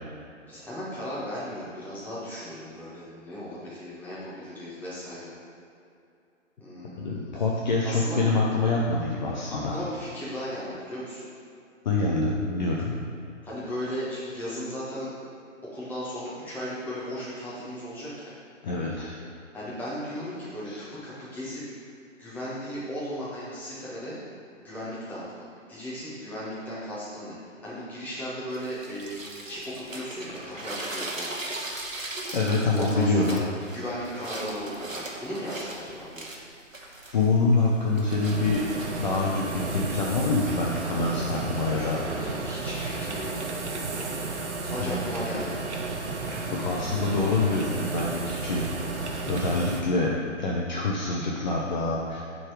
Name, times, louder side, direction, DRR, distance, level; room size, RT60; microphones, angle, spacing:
voice 1, 0.5-5.4 6.6-7.3 7.8-8.2 9.5-11.2 13.4-15.1 15.7-18.4 19.5-21.6 22.2-24.2 24.6-25.2 25.7-31.6 32.7-33.4 33.7-36.3 41.8-43.8 44.6-45.6, equal, 5° left, -10 dB, 1.2 m, -36 dB
voice 2, 7.0-9.8 11.8-13.0 18.6-19.2 20.7-20.8 32.3-33.4 37.1-38.7 39.0-42.0 44.8-45.0 46.3-49.0 49.3-50.1 50.4-52.2, left 3 dB, 35° left, -3 dB, 0.7 m, -26 dB
sound 1, 28.5-39.3, right 2 dB, 90° right, 1.1 m, -39 dB
sound 2, 37.9-49.8, right 3 dB, 60° right, 1.0 m, -33 dB
6.3 x 4.0 x 4.8 m, 2.6 s
figure-of-eight pair, 135°, 39 cm